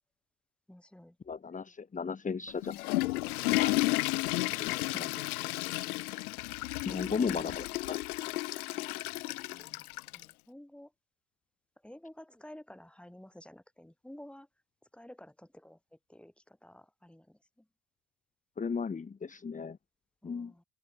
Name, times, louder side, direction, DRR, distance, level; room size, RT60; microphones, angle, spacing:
voice 1, 0.7-1.2 8.7-8.9 9.5-9.9 10.1-10.9 11.8-14.5 14.9-15.8 16.1-17.7 18.8-18.9 20.2-20.6, left 1 dB, ahead, 7.8 m, -52 dB
voice 2, 1.3-2.8 3.6-3.7 4.5-5.3 6.9-8.0 18.6-19.8 20.2-20.5, left 5 dB, 20° left, 2.8 m, -36 dB
Water / Toilet flush, 2.5-10.3, left 20 dB, 90° left, 2.1 m, -32 dB
open air
supercardioid pair, 125°, 43 cm